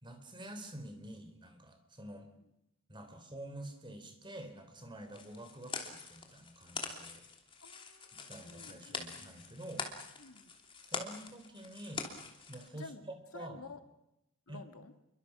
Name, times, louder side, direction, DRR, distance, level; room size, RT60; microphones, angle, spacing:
voice 1, 0.0-2.3 2.9-7.2 8.1-9.9 10.8-12.1 12.5-13.6 14.5-14.6, right 1 dB, 20° right, 6 dB, 3.9 m, -48 dB
sound 1, 5.1-12.7, left 4 dB, 25° left, 3.0 m, -44 dB
voice 2, 7.6-9.5 10.2-10.5 12.7-13.0 13.3-13.8 14.5-14.9, left 3 dB, 80° left, 8 dB, 2.1 m, -52 dB
29.0 x 23.5 x 6.2 m, 0.84 s
head